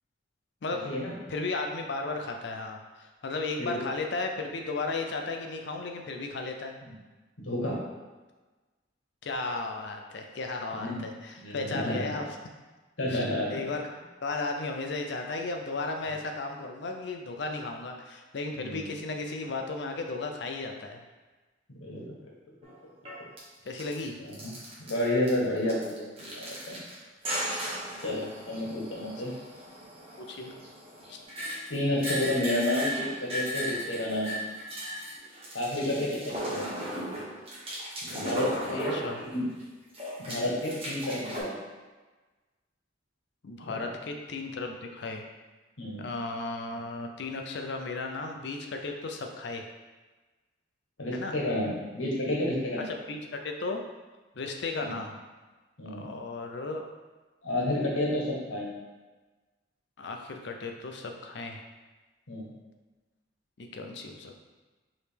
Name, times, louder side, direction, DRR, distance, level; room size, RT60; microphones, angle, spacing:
voice 1, 0.7-1.1 3.6-3.8 6.8-6.9 7.4-7.8 10.7-11.0 11.4-12.2 13.0-13.6 18.5-18.8 21.7-22.2 23.2-23.3 24.2-24.5 24.8-26.8 28.0-29.3 31.7-34.3 35.5-36.7 38.0-39.4 40.2-41.6 43.6-43.9 45.8-46.0 51.0-52.9 54.8-55.0 55.8-56.1 57.4-58.7 62.3-62.5, left 1 dB, 85° left, -3 dB, 1.2 m, -31 dB
voice 2, 1.3-6.8 9.2-12.4 13.1-13.2 13.5-21.0 23.6-24.1 30.2-30.5 31.1-31.2 38.7-39.2 43.4-45.2 46.0-49.7 51.1-51.4 52.8-53.8 54.4-55.1 55.9-56.8 60.0-61.6 63.6-64.4, left 3 dB, 60° left, 3 dB, 0.5 m, -35 dB
sound 1, 22.6-22.7 23.0-23.4 23.7-24.1 24.3-25.3 25.6-27.0 27.2-39.6 39.9-41.4, equal, 30° right, 1.1 m, -36 dB
4.8 x 3.2 x 3.3 m, 1.2 s
head